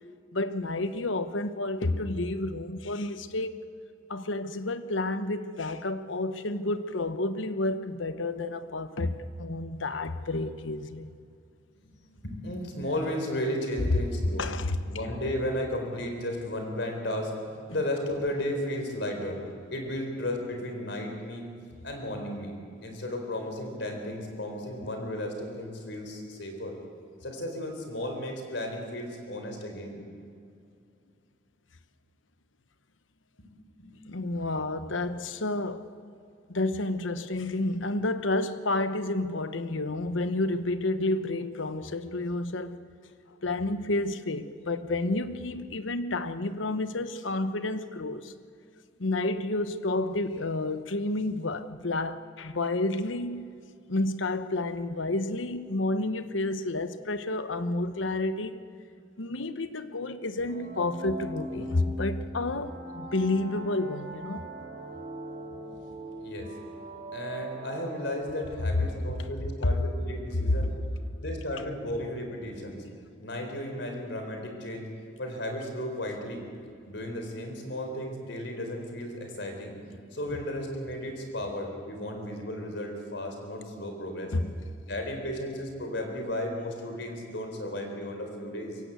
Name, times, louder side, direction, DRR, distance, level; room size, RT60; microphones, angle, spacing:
voice 1, 0.3-3.6 4.1-11.1 14.4-14.8 34.1-35.9 36.5-42.8 43.4-48.3 49.0-53.5 53.9-58.5 59.2-64.5 69.2-69.3 69.6-69.8 80.3-80.4 84.3-84.6, left 2 dB, 85° left, 1.1 m, -30 dB
voice 2, 12.1-14.4 14.8-17.4 17.7-19.4 19.7-21.5 21.8-22.5 22.8-26.7 27.2-30.0 33.4-33.5 33.8-33.9 66.1-66.5 67.1-70.7 71.2-72.8 73.2-76.5 76.9-79.7 80.1-84.3 84.9-88.8, left 1 dB, 65° left, 4.1 m, -34 dB
sound 1, 60.4-69.0, right 1 dB, 40° right, 3.7 m, -41 dB
24.0 x 17.0 x 8.2 m
head